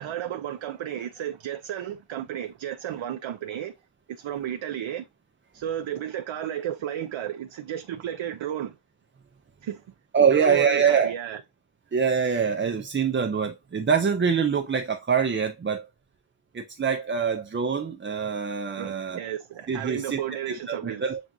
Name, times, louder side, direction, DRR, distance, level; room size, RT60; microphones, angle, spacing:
voice 1, 0.0-3.7 4.1-5.1 5.5-8.8 9.6-9.8 10.3-11.4 18.8-21.0, right 10 dB, 70° right, 0.6 m, -33 dB
voice 2, 10.1-11.1 11.9-15.9 16.5-19.2 19.7-20.2 20.5-21.2, right 6 dB, 25° right, 0.4 m, -24 dB
7.3 x 2.4 x 2.6 m
wide cardioid pair, 105°, 50 cm